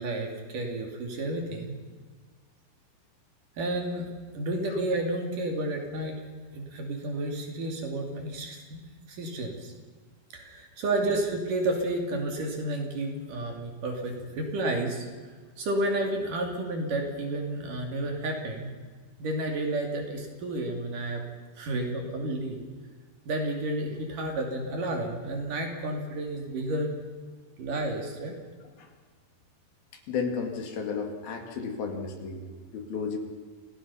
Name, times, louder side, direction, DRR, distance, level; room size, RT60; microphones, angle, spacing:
voice 1, 0.0-1.8 3.6-6.2 6.5-8.8 9.1-9.7 10.3-15.1 15.6-18.7 19.2-21.2 21.6-22.7 23.3-26.9 27.6-28.4, right 1 dB, 55° right, 2 dB, 4.0 m, -31 dB
voice 2, 30.1-33.2, left 5 dB, 65° left, 4 dB, 3.8 m, -33 dB
27.5 x 18.0 x 5.6 m, 1.5 s
omnidirectional pair, 4.9 m